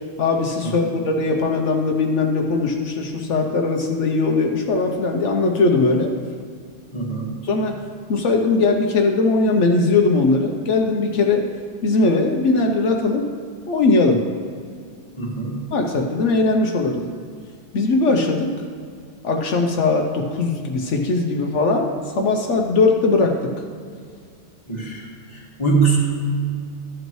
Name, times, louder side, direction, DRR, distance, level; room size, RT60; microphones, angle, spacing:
voice 1, 0.2-6.1 7.4-7.8 8.1-11.4 11.8-13.3 13.7-14.2 15.7-17.1 17.7-18.5 19.2-21.9 22.2-23.4, left 3 dB, 75° left, 2 dB, 1.1 m, -19 dB
voice 2, 6.9-7.4 15.2-15.7 24.7-26.0, right 4 dB, 25° left, -3 dB, 1.6 m, -23 dB
13.0 x 8.0 x 3.1 m, 2.2 s
omnidirectional pair, 1.2 m